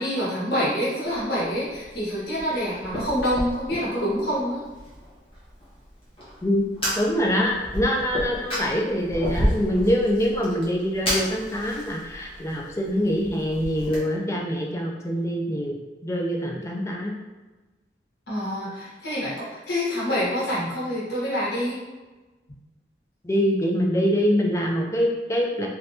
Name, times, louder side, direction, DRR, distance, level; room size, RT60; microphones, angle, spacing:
voice 1, 0.0-4.6 18.3-21.8, equal, 65° left, -9 dB, 1.2 m, -26 dB
Fire, 1.0-14.0, equal, 30° left, 0.9 m, -32 dB
voice 2, 7.0-15.8 16.0-17.1 23.2-25.7, equal, 15° left, -1 dB, 0.4 m, -24 dB
3.3 x 2.6 x 2.7 m, 1.2 s
head